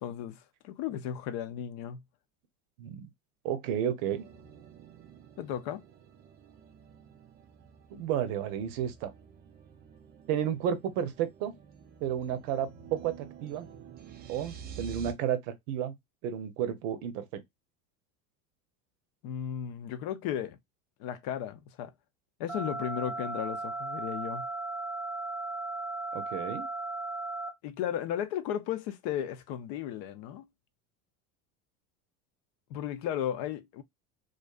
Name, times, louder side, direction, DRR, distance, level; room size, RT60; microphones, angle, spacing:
voice 1, 0.0-2.0 5.4-5.8 19.2-20.6 21.0-21.9 22.4-24.4 27.6-30.5 32.7-33.8, left 10 dB, 55° left, 0.6 m, -35 dB
voice 2, 2.8-3.1 3.4-4.2 7.9-9.1 10.3-11.6 12.0-13.7 14.3-15.9 16.2-17.4 26.1-26.7, right 9 dB, 65° right, 0.7 m, -32 dB
sound 1, 4.1-15.1, right 7 dB, 25° right, 0.3 m, -50 dB
sound 2, 22.5-27.5, right 2 dB, 5° left, 0.6 m, -36 dB
2.4 x 2.3 x 2.2 m
hypercardioid pair, 90°, 43 cm